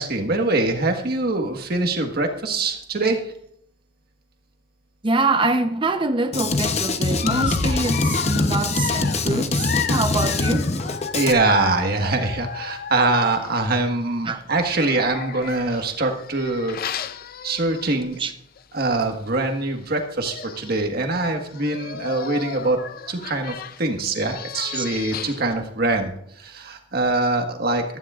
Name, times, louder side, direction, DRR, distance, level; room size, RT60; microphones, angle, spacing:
voice 1, 0.0-3.2 11.1-17.0 17.4-18.2 18.7-22.8 23.1-27.8, right 2 dB, 55° right, 1.5 m, -23 dB
voice 2, 5.0-10.7 14.3-14.4 18.2-18.3 24.8-24.9, right 2 dB, 25° right, 0.8 m, -24 dB
Drum kit, 6.3-11.3, left 3 dB, 35° left, 0.8 m, -23 dB
Dog, 7.2-13.8 14.5-18.2 18.6-18.7 19.0-19.1 20.0-20.1 20.3-20.8 21.4-25.5, left 8 dB, 50° left, 0.5 m, -33 dB
15.0 x 13.0 x 2.5 m
head